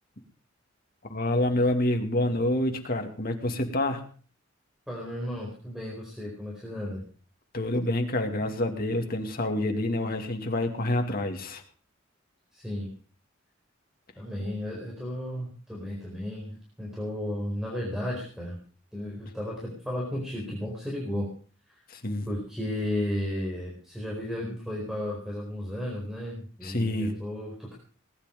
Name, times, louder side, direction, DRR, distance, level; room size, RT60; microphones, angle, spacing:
voice 1, 1.1-4.1 7.5-11.6 21.9-22.3 26.6-27.1, left 1 dB, 45° left, 4 dB, 2.4 m, -27 dB
voice 2, 4.9-7.0 12.5-12.9 14.2-18.6 18.9-21.3 21.7-21.8 22.3-27.8, left 1 dB, ahead, -3 dB, 4.5 m, -34 dB
19.5 x 10.0 x 5.2 m, 0.41 s
head